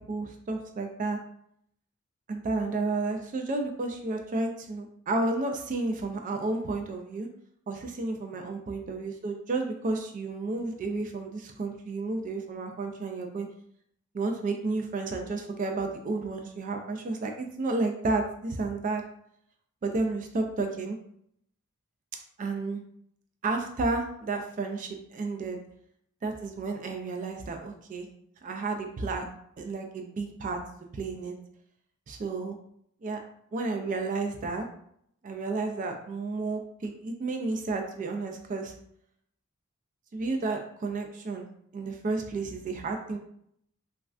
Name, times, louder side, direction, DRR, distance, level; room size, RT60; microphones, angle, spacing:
voice 1, 0.1-1.2 2.3-7.3 7.7-13.5 14.1-19.0 19.8-21.0 22.4-22.8 23.4-25.6 26.2-28.1 28.4-29.2 29.6-30.6 30.9-31.4 32.1-32.6 33.0-33.2 33.5-34.7 35.2-38.7 40.1-41.5 41.7-43.2, right 3 dB, 40° right, 4 dB, 0.3 m, -31 dB
3.1 x 2.3 x 2.4 m, 0.70 s
head